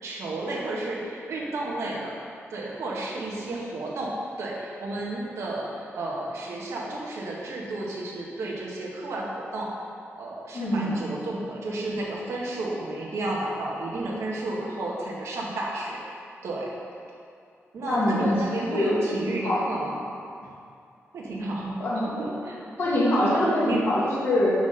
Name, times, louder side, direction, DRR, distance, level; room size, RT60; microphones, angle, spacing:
voice 1, 0.0-2.1 2.5-4.1 4.4-9.7 10.2-16.0 16.4-16.7 17.7-20.1 21.1-21.8 22.2-22.6 23.6-23.8, right 2 dB, 85° right, -4 dB, 1.4 m, -32 dB
voice 2, 10.5-11.0 17.8-18.4 18.7-19.0 19.3-19.6 21.8-22.1 22.8-24.5, left 1 dB, 60° left, -6 dB, 1.9 m, -24 dB
5.9 x 4.3 x 6.4 m, 2.4 s
wide cardioid pair, 145°, 5 cm